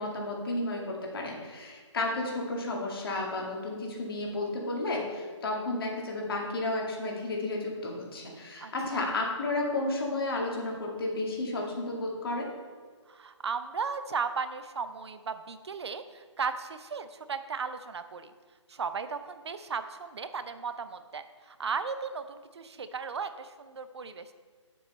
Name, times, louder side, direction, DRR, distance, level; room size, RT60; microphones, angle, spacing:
voice 1, 0.0-12.5, left 2 dB, 50° left, 0 dB, 2.0 m, -32 dB
voice 2, 8.6-9.0 13.1-18.3 18.7-24.3, right 5 dB, 60° right, 11 dB, 0.6 m, -36 dB
8.7 x 7.1 x 4.2 m, 1.5 s
hypercardioid pair, 160°, 16 cm